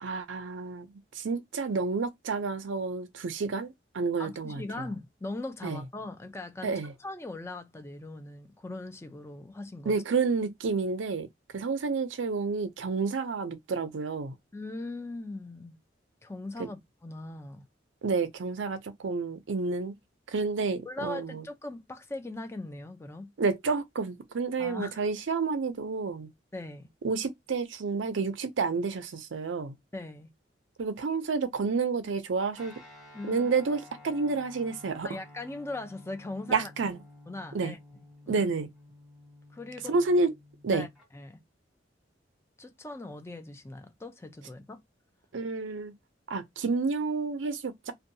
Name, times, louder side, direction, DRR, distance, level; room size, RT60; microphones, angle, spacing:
voice 1, 0.0-4.8 5.6-5.8 6.6-6.9 9.9-11.3 11.5-14.4 16.6-16.7 18.0-19.9 20.3-21.4 23.4-26.3 27.0-29.7 30.8-32.7 33.3-35.2 36.5-37.0 37.5-37.7 38.3-38.7 39.9-40.3 40.6-40.9 45.3-46.0 46.3-47.9, right 4 dB, 90° right, 0.5 m, -30 dB
voice 2, 4.2-9.9 14.5-15.8 16.2-17.6 20.8-23.3 24.6-25.0 26.5-26.9 29.9-30.3 33.1-33.5 35.0-36.7 37.3-37.8 38.3-38.5 39.5-39.9 40.7-40.9 41.1-41.4 42.6-44.8, left 2 dB, 15° left, 0.4 m, -40 dB
Guitar, 32.6-41.1, left 2 dB, 5° right, 1.1 m, -53 dB
2.6 x 2.2 x 2.6 m
head